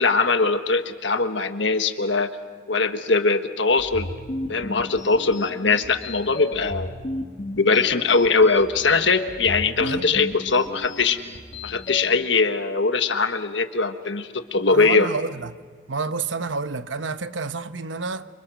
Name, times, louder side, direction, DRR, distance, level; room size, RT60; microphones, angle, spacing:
voice 1, 0.0-2.3 2.7-4.1 4.5-7.0 7.6-11.2 11.6-15.1, left 4 dB, 80° left, 1.5 m, -21 dB
sound 1, 3.8-12.0, left 1 dB, 40° left, 2.3 m, -34 dB
voice 2, 9.8-10.2 14.7-15.6 15.9-18.3, right 4 dB, 90° right, 1.0 m, -29 dB
28.5 x 26.5 x 6.3 m
head